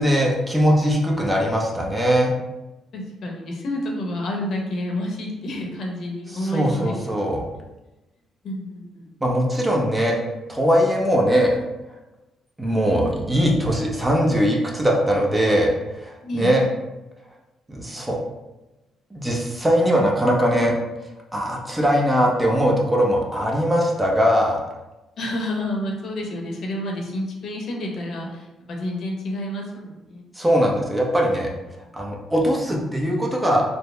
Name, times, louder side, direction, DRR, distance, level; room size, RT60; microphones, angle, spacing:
voice 1, 0.0-2.3 6.3-7.4 9.2-10.2 10.5-11.6 12.6-16.6 17.7-18.2 19.1-20.7 21.3-24.6 30.4-31.5 31.9-33.6, equal, 15° right, -1 dB, 0.7 m, -20 dB
voice 2, 2.9-7.3 8.4-9.1 16.2-16.5 25.2-30.2 31.9-32.0, left 1 dB, 65° left, 0 dB, 0.8 m, -29 dB
3.9 x 2.0 x 3.3 m, 1.0 s
cardioid pair, 90°, 0 cm